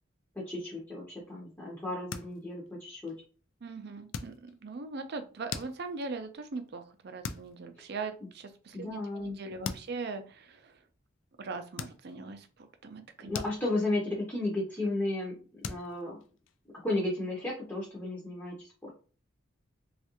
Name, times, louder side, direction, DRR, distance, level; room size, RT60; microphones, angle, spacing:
voice 1, 0.3-3.1 8.7-9.8 13.2-16.2 16.8-18.9, left 2 dB, 10° left, -5 dB, 0.6 m, -34 dB
sound 1, 1.9-2.7 3.1-3.4 4.1-4.8 5.2-6.2 6.7-6.9 7.2-7.6 8.0-8.1 9.1-9.2 9.6-10.0 10.6-10.8 11.8-12.4 12.8-14.1 14.4-14.7 15.0-15.1 15.6-16.9, left 6 dB, 70° left, 0.3 m, -41 dB
voice 2, 3.6-10.7 11.4-13.3, right 4 dB, 55° right, 8 dB, 0.5 m, -40 dB
3.2 x 2.4 x 2.9 m, 0.37 s
head